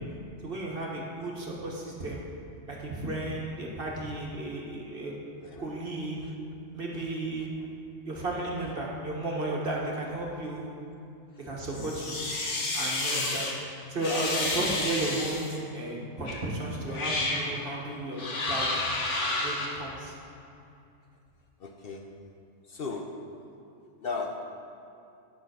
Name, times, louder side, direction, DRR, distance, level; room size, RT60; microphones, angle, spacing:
voice 1, 0.4-2.2 2.7-5.1 5.6-6.2 6.7-7.5 8.0-10.7 11.4-12.2 12.7-13.5 13.9-18.7 19.4-20.1, right 2 dB, 50° right, -2 dB, 1.6 m, -34 dB
sound 1, 11.7-13.5 14.0-15.6 16.3-16.4 16.9-17.5 18.2-19.7, left 2 dB, 70° left, 1.5 m, -30 dB
voice 2, 21.6-22.1 22.7-23.2 24.0-24.4, left 4 dB, 55° left, 1 dB, 0.8 m, -37 dB
9.4 x 5.8 x 6.3 m, 2.6 s
omnidirectional pair, 1.3 m